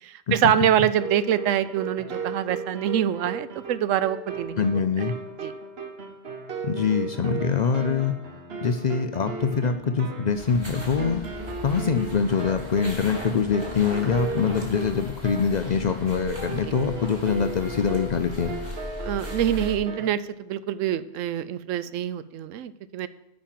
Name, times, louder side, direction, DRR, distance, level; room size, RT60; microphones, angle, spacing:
voice 1, 0.0-5.1 5.4-5.5 16.6-16.8 19.0-23.1, right 10 dB, 80° right, 15 dB, 0.9 m, -25 dB
sound 1, 0.9-20.1, right 3 dB, 55° right, 1.2 m, -36 dB
voice 2, 4.6-5.2 6.6-8.2 8.6-11.2 11.6-18.5, left 6 dB, 60° left, 8 dB, 0.4 m, -24 dB
sound 2, 10.3-19.8, left 1 dB, 20° right, 2.4 m, -38 dB
8.8 x 5.3 x 7.5 m, 0.86 s
omnidirectional pair, 1.3 m